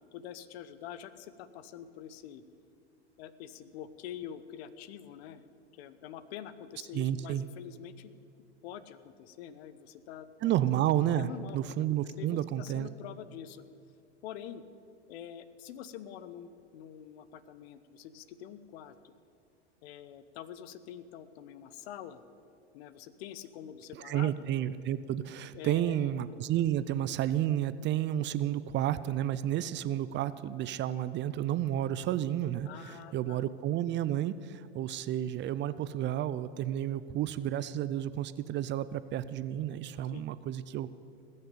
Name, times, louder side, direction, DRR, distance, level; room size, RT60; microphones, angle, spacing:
voice 1, 0.1-2.4 3.2-5.4 5.7-8.1 8.6-10.3 11.1-11.6 12.0-13.6 14.2-14.6 15.1-19.1 19.8-22.2 22.7-24.3 25.5-26.1 32.6-33.4 40.1-40.3, left 10 dB, 65° left, 14 dB, 0.9 m, -45 dB
voice 2, 6.9-7.5 10.4-12.9 24.0-40.9, right 12 dB, 35° right, 15 dB, 0.5 m, -31 dB
20.0 x 6.6 x 8.4 m, 2.3 s
hypercardioid pair, 95°, 34 cm